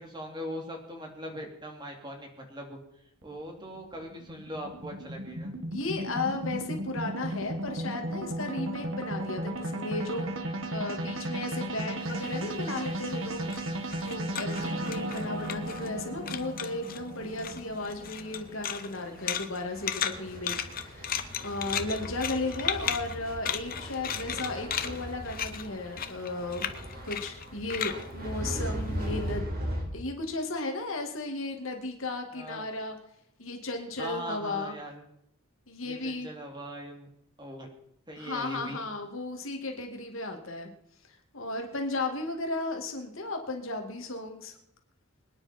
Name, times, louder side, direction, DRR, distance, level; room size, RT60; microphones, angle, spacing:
voice 1, 0.0-2.8 3.2-5.5 14.2-14.8 32.3-32.6 34.0-35.0 35.8-37.1 37.4-37.7 38.1-38.8, equal, 20° right, 2 dB, 3.0 m, -40 dB
sound 1, 3.2-19.6, right 1 dB, 65° right, 1.9 m, -35 dB
voice 2, 5.7-10.3 10.7-13.5 14.0-20.5 20.8-26.7 27.0-29.5 29.9-33.0 33.4-34.7 35.7-36.3 38.2-40.7 41.3-44.6, left 2 dB, 70° left, 3 dB, 2.3 m, -35 dB
sound 2, 12.1-16.0 16.3-17.0 17.4-29.2, left 8 dB, 45° left, 1.0 m, -36 dB
sound 3, 13.3-15.0 15.4-16.2 16.8-29.9, equal, 45° right, 4.1 m, -39 dB
25.0 x 9.9 x 4.4 m, 0.77 s
head